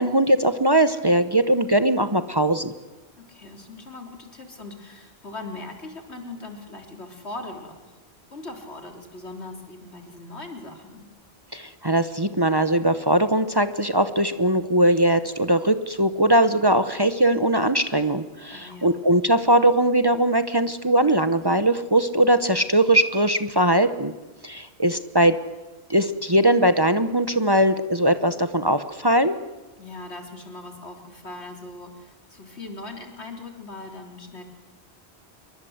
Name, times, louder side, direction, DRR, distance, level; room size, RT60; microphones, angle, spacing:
voice 1, 0.0-2.7 11.5-24.1 24.4-25.4 25.9-29.4, right 1 dB, 25° right, 10 dB, 1.0 m, -20 dB
voice 2, 3.2-8.0 8.3-11.1 18.5-19.0 29.8-34.4, left 2 dB, 85° left, 4 dB, 3.8 m, -40 dB
27.5 x 23.0 x 8.0 m, 1.2 s
omnidirectional pair, 1.1 m